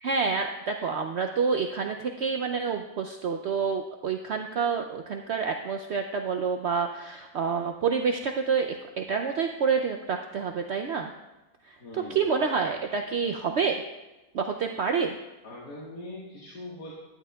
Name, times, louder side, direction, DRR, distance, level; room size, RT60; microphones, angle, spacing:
voice 1, 0.0-11.1 11.7-11.8 12.1-13.8 14.3-15.2, right 5 dB, 75° right, 4 dB, 0.6 m, -28 dB
voice 2, 11.8-12.3 15.4-16.9, left 1 dB, 90° left, -6 dB, 2.2 m, -41 dB
12.0 x 11.0 x 2.3 m, 1.1 s
omnidirectional pair, 1.7 m